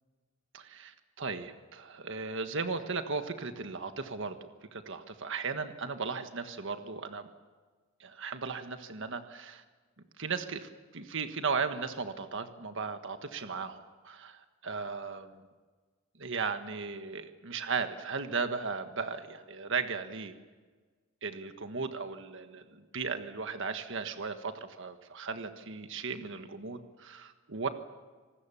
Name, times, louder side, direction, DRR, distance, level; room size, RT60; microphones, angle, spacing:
voice 1, 0.5-4.4 4.7-7.3 8.0-9.6 10.2-15.4 16.2-20.3 21.2-27.7, right 5 dB, 65° right, 8 dB, 1.5 m, -36 dB
26.5 x 19.5 x 7.1 m, 1.4 s
head